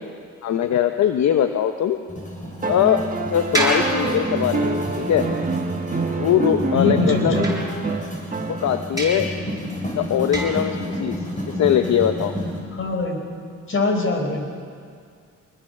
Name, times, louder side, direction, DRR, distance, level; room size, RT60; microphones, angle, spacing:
voice 1, 0.4-2.0 2.6-5.3 6.2-7.4 8.5-9.3 10.0-11.2 11.5-12.3, left 9 dB, 65° left, 7 dB, 1.1 m, -21 dB
sound 1, 2.1-12.6, equal, 25° left, 6.8 m, -31 dB
sound 2, 2.6-9.1 10.5-10.6, right 3 dB, 25° right, 1.8 m, -27 dB
sound 3, 3.5-4.9 7.4-8.3 9.0-9.4 10.3-10.8, right 1 dB, 10° right, 6.5 m, -27 dB
voice 2, 6.7-7.5 12.7-13.2 13.7-14.5, left 3 dB, 45° left, 3 dB, 4.8 m, -23 dB
24.5 x 20.5 x 6.8 m, 2.1 s
cardioid pair, 90°, 30 cm